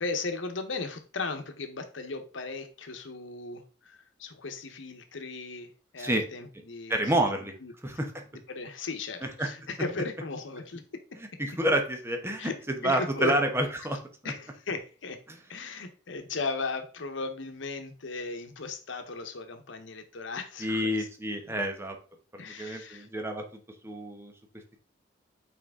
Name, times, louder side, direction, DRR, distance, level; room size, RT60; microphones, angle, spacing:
voice 1, 0.0-7.3 7.6-7.7 8.5-10.8 12.4-12.5 12.8-13.3 14.2-15.2 15.5-21.1 21.5-21.6 22.4-23.1, left 3 dB, 80° left, 7 dB, 1.0 m, -36 dB
voice 2, 6.9-7.6 7.8-8.2 9.4-9.5 11.4-14.3 15.3-15.4 20.6-22.0 22.6-23.5 23.8-24.3, right 1 dB, 15° right, 4 dB, 1.0 m, -29 dB
5.9 x 4.4 x 3.6 m, 0.37 s
head